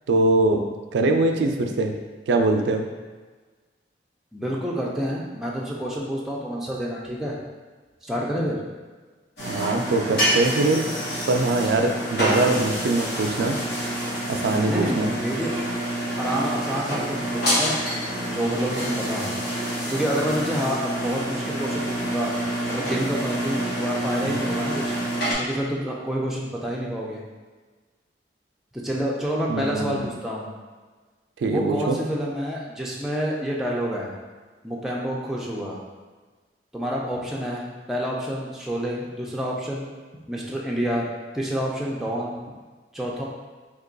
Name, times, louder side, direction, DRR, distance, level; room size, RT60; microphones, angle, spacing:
voice 1, 0.1-0.6 0.9-2.0 2.3-2.8 9.5-10.9 11.3-13.6 14.3-15.1 24.2-24.4 29.5-30.1 31.4-32.0, right 2 dB, 85° right, 4 dB, 0.3 m, -22 dB
voice 2, 4.3-7.4 8.0-8.6 12.2-12.6 14.7-15.6 16.2-17.7 18.3-19.3 19.9-22.3 22.8-25.0 25.4-27.2 28.7-30.5 31.5-34.1 34.6-35.8 36.7-39.9 40.3-41.1 41.3-42.3 42.9-43.2, equal, ahead, -4 dB, 0.4 m, -28 dB
sound 1, 9.4-25.3, right 1 dB, 60° left, 1.0 m, -27 dB
2.9 x 2.2 x 3.9 m, 1.4 s
head